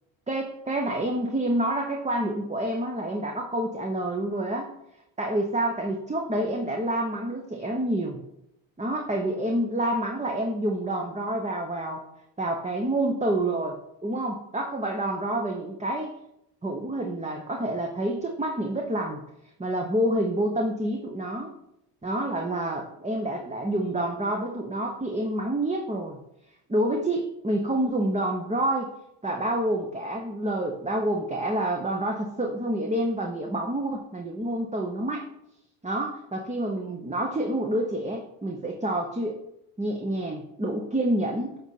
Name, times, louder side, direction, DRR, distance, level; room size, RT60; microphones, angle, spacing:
voice 1, 0.3-4.7 5.2-8.2 8.8-12.0 12.4-16.2 16.6-19.2 19.6-21.5 22.0-26.2 26.7-28.9 29.2-35.2 35.8-39.4 39.8-41.6, right 1 dB, 15° right, 2 dB, 0.9 m, -28 dB
7.8 x 4.3 x 4.1 m, 0.81 s
supercardioid pair, 70°, 50 cm